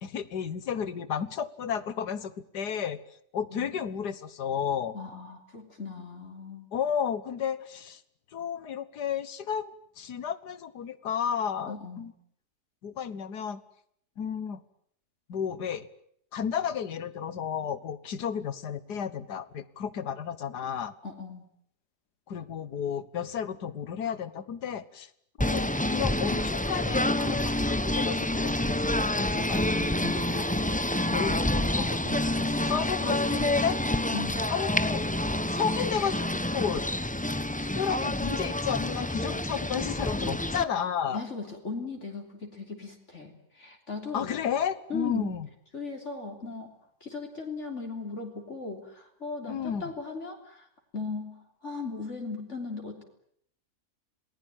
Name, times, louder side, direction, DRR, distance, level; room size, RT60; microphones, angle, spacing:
voice 1, 0.0-3.0 3.3-5.0 6.7-8.0 8.3-12.1 12.8-13.6 14.2-14.6 15.3-15.9 16.3-20.9 22.3-25.1 25.4-33.8 34.5-35.0 35.5-36.8 37.8-41.2 44.1-45.5 49.5-49.9, left 8 dB, 85° left, 15 dB, 1.9 m, -33 dB
voice 2, 4.9-6.7 11.7-12.1 21.0-21.4 34.1-34.5 41.1-44.3 44.9-45.3 45.7-46.7 47.0-50.7 50.9-53.0, left 4 dB, 45° left, 2 dB, 3.7 m, -38 dB
Singing / Bird, 25.4-40.6, left 1 dB, 5° left, 0.8 m, -28 dB
28.0 x 20.0 x 9.0 m, 0.69 s
omnidirectional pair, 1.7 m